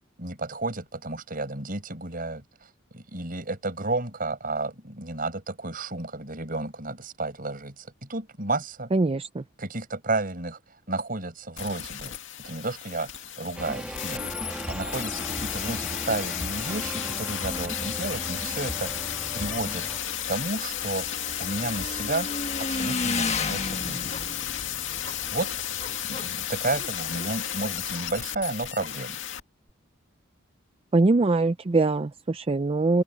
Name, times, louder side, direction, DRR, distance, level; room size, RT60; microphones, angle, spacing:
voice 1, 0.2-8.9 9.6-10.6 10.9-19.9 20.3-21.1 21.4-22.3 22.7-24.2 25.3-25.5 26.1-29.2, right 2 dB, 45° right, 6.3 m, -32 dB
voice 2, 8.9-9.4 30.9-33.0, right 3 dB, 30° right, 0.4 m, -22 dB
sound 1, 11.6-29.4 29.7-29.8, left 11 dB, 75° left, 2.2 m, -33 dB
sound 2, 13.6-20.0, equal, 5° right, 1.7 m, -36 dB
Motorcycle / Engine, 19.2-28.4, left 3 dB, 35° left, 1.5 m, -35 dB
head